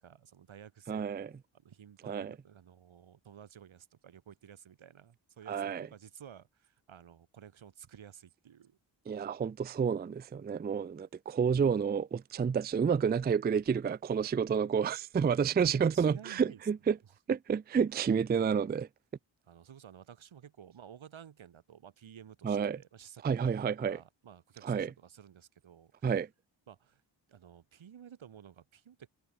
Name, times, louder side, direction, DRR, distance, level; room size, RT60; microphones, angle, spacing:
voice 1, 0.0-1.4 1.6-8.8 15.6-16.6 19.5-26.1 26.7-27.0 27.3-29.1, right 8 dB, 85° right, 1.7 m, -53 dB
voice 2, 0.9-1.3 2.0-2.4 5.5-5.9 9.1-17.0 17.3-18.9 22.4-22.8 23.2-24.0 24.6-24.9 26.0-26.3, right 6 dB, 25° right, 0.4 m, -30 dB
cardioid pair, 65°, 46 cm